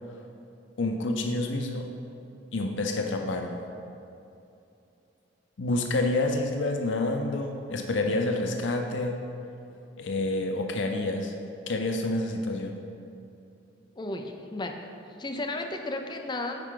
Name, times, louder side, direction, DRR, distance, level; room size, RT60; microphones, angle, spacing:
voice 1, 0.8-1.9 2.5-3.6 5.6-9.2 10.0-11.3 11.7-12.8, left 2 dB, 90° left, 3 dB, 0.6 m, -28 dB
voice 2, 14.0-14.9 15.2-16.6, left 2 dB, 25° left, 4 dB, 0.5 m, -34 dB
9.7 x 4.5 x 3.8 m, 2.7 s
head